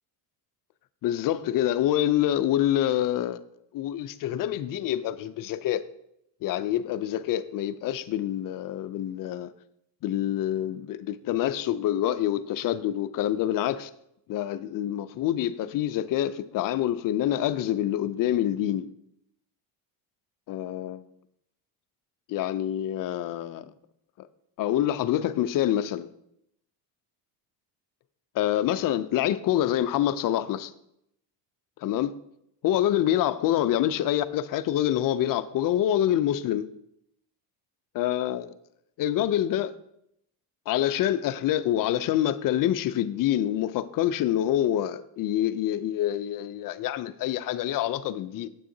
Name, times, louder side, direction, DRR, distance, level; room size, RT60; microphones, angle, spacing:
voice 1, 1.0-3.4 3.7-5.9 6.4-9.5 10.0-13.9 14.3-18.9 20.5-21.0 22.3-23.7 24.2-24.3 24.6-26.1 28.3-30.7 31.8-32.1 32.6-36.7 37.9-38.5 39.0-39.7 40.7-48.5, left 12 dB, 45° left, 0.5 m, -26 dB
7.9 x 6.2 x 2.7 m
supercardioid pair, 90°, 49 cm